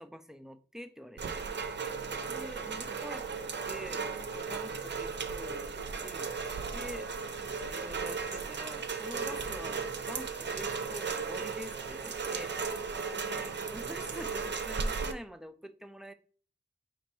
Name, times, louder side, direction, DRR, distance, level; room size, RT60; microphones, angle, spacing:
voice 1, 0.0-1.5 2.3-3.3 3.7-6.3 6.7-7.3 7.6-12.9 13.2-16.1, equal, 5° right, 0.3 m, -46 dB
Rain, 1.2-15.1, right 5 dB, 70° right, 0.5 m, -36 dB
4.3 x 2.9 x 3.0 m
wide cardioid pair, 65°, 19 cm